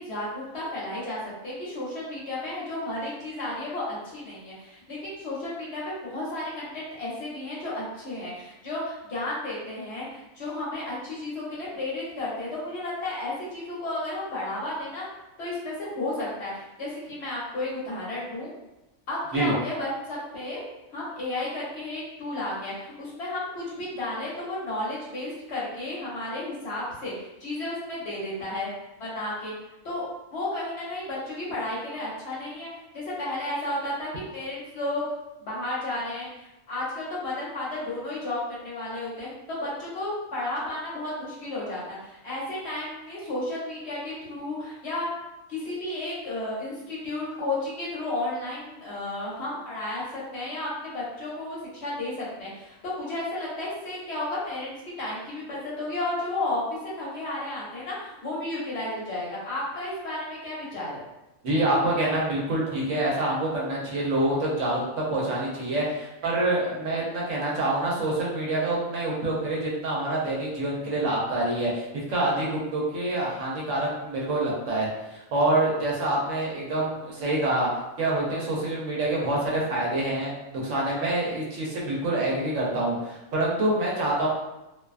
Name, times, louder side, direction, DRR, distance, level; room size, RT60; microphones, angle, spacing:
voice 1, 0.0-15.0 15.4-18.5 19.1-20.6 20.9-28.7 29.0-29.5 29.8-30.1 30.3-35.1 35.4-45.1 45.5-61.0, left 2 dB, 60° left, -6 dB, 1.1 m, -33 dB
voice 2, 61.4-77.7 78.0-84.3, right 1 dB, 70° right, -4 dB, 1.0 m, -26 dB
2.6 x 2.2 x 2.4 m, 0.96 s
omnidirectional pair, 1.4 m